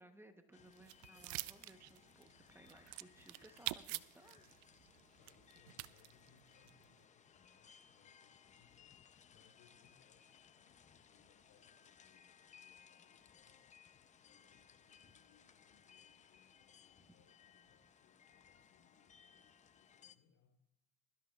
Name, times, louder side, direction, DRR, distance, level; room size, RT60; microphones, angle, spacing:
voice 1, 0.0-4.5, right 1 dB, 5° right, 6 dB, 0.9 m, -62 dB
sound 1, 0.5-20.1, left 7 dB, 20° left, 0.6 m, -64 dB
sound 2, 0.7-6.9, right 20 dB, 75° right, 0.5 m, -46 dB
voice 2, 5.2-13.7 14.2-20.6, left 7 dB, 70° left, 4 dB, 3.4 m, -72 dB
22.0 x 12.5 x 2.4 m, 0.84 s
supercardioid pair, 115°, 33 cm